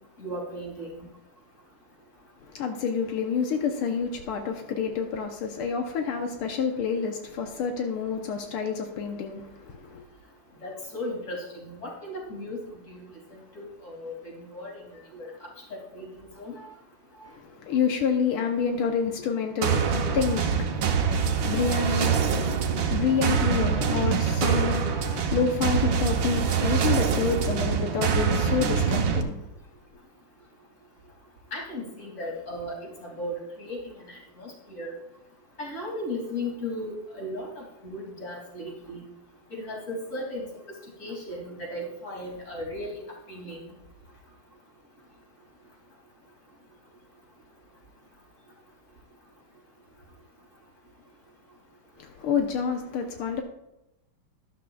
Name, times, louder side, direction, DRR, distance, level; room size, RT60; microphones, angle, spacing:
voice 1, 0.2-1.1 10.6-12.6 12.9-13.2 13.5-14.7 15.1-15.3 15.7-16.1 16.4-16.5 31.5-34.9 35.6-39.0 39.5-40.5 41.0-43.0 43.3-43.6, left 1 dB, 35° left, 3.2 m, -36 dB
voice 2, 2.5-10.0 17.3-29.4 52.0-53.4, left 6 dB, 85° left, 1.8 m, -28 dB
sound 1, 19.6-29.2, right 6 dB, 65° right, 1.6 m, -25 dB
12.5 x 12.0 x 2.4 m
omnidirectional pair, 2.4 m